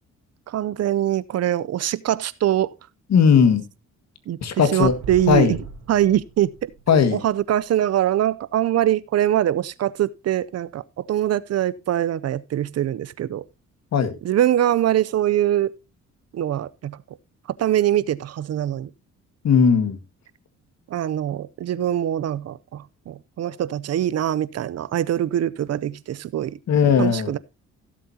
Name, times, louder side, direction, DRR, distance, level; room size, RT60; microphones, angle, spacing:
voice 1, 0.5-2.7 4.3-4.4 4.7-5.6 5.9-6.5 7.1-13.4 14.2-15.7 16.3-17.0 17.6-18.9 20.9-26.6 27.0-27.4, right 11 dB, 55° right, 0.6 m, -23 dB
voice 2, 3.1-3.6 4.4-5.0 5.3-5.6 6.9-7.2 13.9-14.1 19.4-20.0 26.7-27.3, left 6 dB, 60° left, 1.8 m, -17 dB
sound 1, 4.8-8.2 8.8-8.9 13.5-13.6, right 4 dB, 80° right, 4.0 m, -39 dB
16.5 x 7.6 x 2.8 m
cardioid pair, 90°, 30 cm